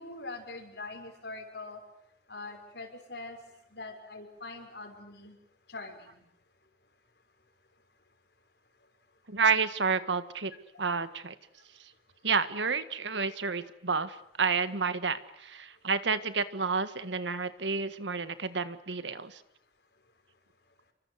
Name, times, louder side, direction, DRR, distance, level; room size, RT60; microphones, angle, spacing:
voice 1, 0.0-1.8 2.3-3.4 3.7-5.4 5.7-6.2, left 3 dB, 65° left, 6 dB, 5.8 m, -43 dB
voice 2, 9.3-10.5 10.8-11.4 12.2-19.4, right 5 dB, 80° right, 12 dB, 1.7 m, -30 dB
28.5 x 24.5 x 8.1 m, 0.72 s
head